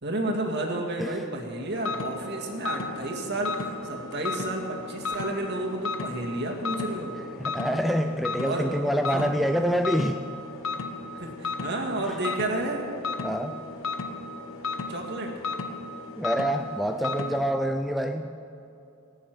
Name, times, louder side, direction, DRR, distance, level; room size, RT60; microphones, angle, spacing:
voice 1, 0.0-7.2 8.4-8.7 9.1-9.3 11.1-12.9 14.9-15.3, right 2 dB, 50° right, 0 dB, 2.1 m, -31 dB
sound 1, 1.7-17.4, left 3 dB, 65° left, 1.0 m, -35 dB
voice 2, 7.4-10.2 13.2-13.6 16.2-18.3, equal, ahead, 6 dB, 0.3 m, -26 dB
18.5 x 7.2 x 9.3 m, 2.7 s
head